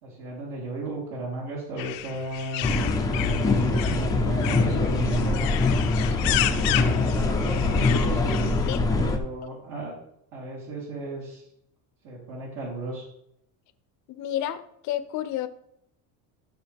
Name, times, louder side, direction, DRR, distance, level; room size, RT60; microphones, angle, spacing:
voice 1, 0.0-5.5 6.6-8.5 9.0-9.9 10.3-11.4 12.0-13.0, right 2 dB, 60° right, -5 dB, 3.4 m, -35 dB
sound 1, 1.8-8.8, left 14 dB, 90° left, 0.9 m, -32 dB
sound 2, 2.6-9.2, left 3 dB, 10° left, 0.6 m, -23 dB
voice 2, 14.1-15.5, left 12 dB, 50° left, 13 dB, 0.8 m, -30 dB
13.5 x 5.9 x 3.5 m, 0.74 s
cardioid pair, 155°, 37 cm